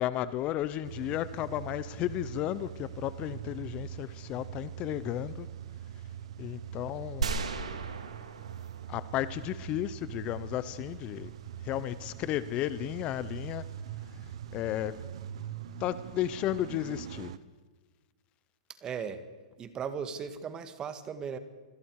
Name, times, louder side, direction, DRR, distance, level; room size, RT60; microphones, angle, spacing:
voice 1, 0.0-5.5 6.4-7.4 8.9-11.3 11.6-13.6 14.5-15.0 15.8-17.3, left 13 dB, 35° left, 15 dB, 0.9 m, -33 dB
Car / Engine starting / Idling, 0.8-17.4, right 10 dB, 65° right, 1.1 m, -43 dB
sound 1, 7.2-9.5, right 5 dB, 90° right, 2.6 m, -36 dB
voice 2, 18.8-19.3 19.6-21.4, right 7 dB, 25° right, 10 dB, 1.9 m, -37 dB
27.5 x 20.5 x 4.9 m, 1.4 s
hypercardioid pair, 125°, 3 cm